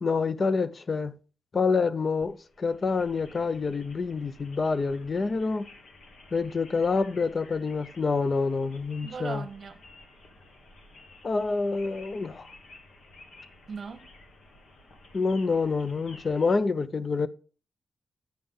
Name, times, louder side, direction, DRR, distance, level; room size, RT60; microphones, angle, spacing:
voice 1, 0.0-1.1 1.5-5.7 6.3-9.5 11.2-12.5 15.1-17.3, left 4 dB, 40° left, 0.5 m, -27 dB
sound 1, 2.2-16.6, left 2 dB, 75° left, 1.4 m, -52 dB
voice 2, 9.0-9.8 13.7-14.1, right 5 dB, 50° right, 0.9 m, -38 dB
8.8 x 5.5 x 3.7 m
wide cardioid pair, 135°, 0 cm